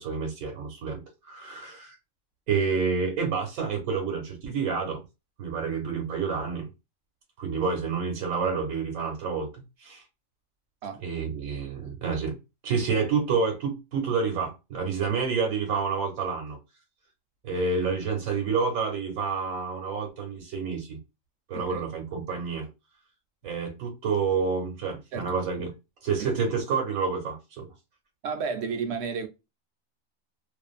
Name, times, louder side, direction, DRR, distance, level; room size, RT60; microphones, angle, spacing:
voice 1, 0.0-2.0 2.5-5.0 5.4-6.7 7.4-10.0 11.0-12.4 12.6-16.6 17.4-21.0 21.5-22.7 23.4-25.7 26.0-27.7, right 5 dB, 85° right, 1.2 m, -29 dB
voice 2, 28.2-29.3, right 5 dB, 60° right, 0.8 m, -32 dB
2.5 x 2.4 x 2.3 m
omnidirectional pair, 1.4 m